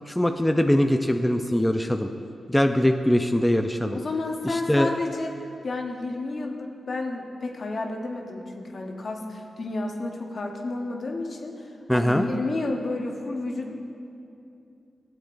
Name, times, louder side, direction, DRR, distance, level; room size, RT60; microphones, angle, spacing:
voice 1, 0.1-2.1 2.5-4.0 4.4-4.9 11.9-12.3, left 1 dB, 10° left, 5 dB, 0.5 m, -22 dB
voice 2, 3.9-5.3 5.6-13.7, left 2 dB, 60° left, 1 dB, 1.1 m, -31 dB
16.0 x 7.9 x 2.6 m, 2.7 s
supercardioid pair, 45°, 0 cm